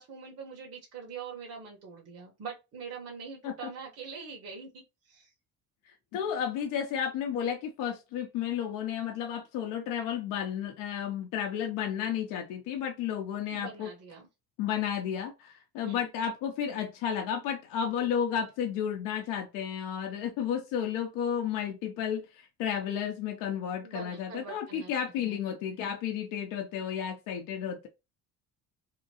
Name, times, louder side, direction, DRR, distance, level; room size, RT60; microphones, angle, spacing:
voice 1, 0.0-5.3 13.5-14.3 15.8-16.1 23.8-25.4, right 5 dB, 50° right, 1.1 m, -44 dB
voice 2, 6.1-13.9 14.6-27.9, left 8 dB, 90° left, 0.7 m, -32 dB
2.9 x 2.6 x 2.8 m
cardioid pair, 100°, 31 cm